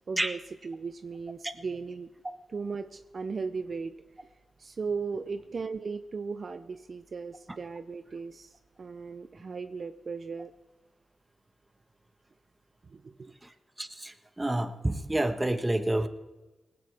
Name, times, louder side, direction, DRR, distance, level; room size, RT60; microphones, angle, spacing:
voice 1, 0.1-2.1 2.5-3.9 4.2-4.3 4.6-10.5 12.9-13.3, right 4 dB, 55° right, 10 dB, 0.7 m, -37 dB
voice 2, 13.8-16.1, right 1 dB, 20° right, 9 dB, 1.4 m, -29 dB
18.5 x 16.5 x 3.6 m, 1.2 s
supercardioid pair, 45°, 0 cm